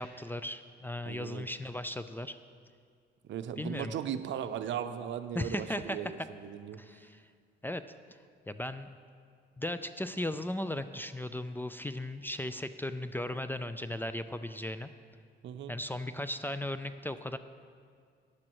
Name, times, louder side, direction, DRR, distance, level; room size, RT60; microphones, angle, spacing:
voice 1, 0.0-2.4 3.6-3.9 5.3-6.3 6.8-7.2 7.6-7.8 8.5-8.9 9.6-14.9 15.7-17.4, left 1 dB, 10° left, 11 dB, 0.3 m, -36 dB
voice 2, 1.1-1.5 3.3-6.8 15.4-15.7, right 9 dB, 70° right, 10 dB, 0.6 m, -37 dB
15.0 x 9.8 x 3.0 m, 2.1 s
cardioid pair, 90°, 20 cm